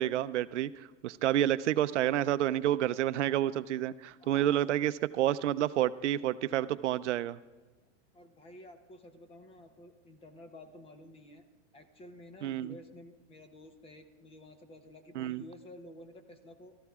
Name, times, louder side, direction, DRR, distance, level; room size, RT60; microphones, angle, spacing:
voice 1, 0.0-7.4 12.4-12.7 15.2-15.4, right 12 dB, 80° right, 15 dB, 0.6 m, -29 dB
voice 2, 4.2-4.7 8.1-11.4 11.7-16.7, left 1 dB, 15° left, 9 dB, 0.8 m, -52 dB
22.5 x 13.5 x 2.4 m, 1.3 s
hypercardioid pair, 135°, 35 cm